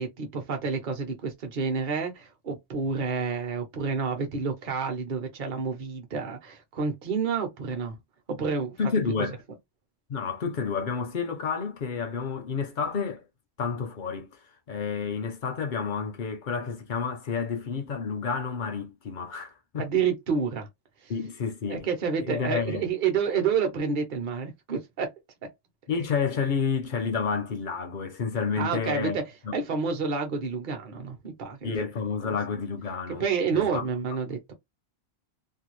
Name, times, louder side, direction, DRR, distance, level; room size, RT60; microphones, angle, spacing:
voice 1, 0.0-8.0 8.3-8.8 9.2-9.3 19.8-20.7 21.0-21.1 21.7-25.1 25.4-25.5 28.6-29.2 29.5-31.8 32.2-32.4 33.1-34.5, right 5 dB, 50° right, 0.9 m, -29 dB
voice 2, 8.8-9.4 10.1-13.2 13.6-14.4 14.7-19.9 21.1-21.9 22.2-22.8 25.9-29.2 29.5-29.6 31.6-33.2 33.5-33.8, left 5 dB, 55° left, 0.6 m, -30 dB
2.7 x 2.3 x 3.0 m
omnidirectional pair, 1.2 m